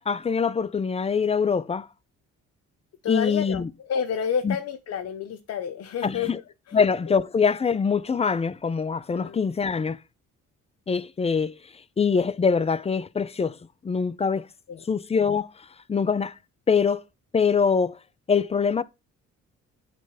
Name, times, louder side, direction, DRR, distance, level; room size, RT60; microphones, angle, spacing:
voice 1, 0.0-1.9 3.1-3.7 4.4-4.6 6.0-6.4 6.7-10.0 10.9-11.5 12.0-13.6 13.8-14.5 14.9-15.5 15.9-16.3 16.7-17.0 17.3-18.0 18.3-18.8, left 5 dB, 20° left, 0.5 m, -23 dB
voice 2, 3.0-6.3 6.7-6.8 9.1-9.4 14.7-14.8, left 7 dB, 55° left, 0.9 m, -30 dB
8.2 x 3.3 x 5.5 m
cardioid pair, 90°, 30 cm